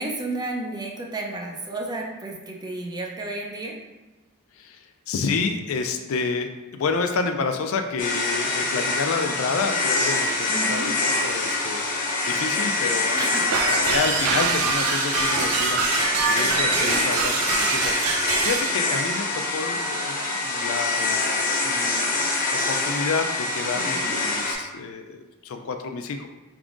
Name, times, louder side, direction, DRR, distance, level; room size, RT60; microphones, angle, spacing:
voice 1, 0.0-3.7 10.5-10.9 13.1-13.5 14.3-14.4 16.4-17.0 23.7-24.2, right 2 dB, 20° right, 0 dB, 0.5 m, -32 dB
voice 2, 4.6-19.3 19.5-22.2 22.5-26.3, left 4 dB, 65° left, 6 dB, 0.4 m, -29 dB
sound 1, 8.0-24.5, left 2 dB, 40° left, 0.8 m, -25 dB
sound 2, 13.5-18.7, right 5 dB, 80° right, 0.5 m, -25 dB
4.8 x 3.6 x 2.5 m, 1.1 s
head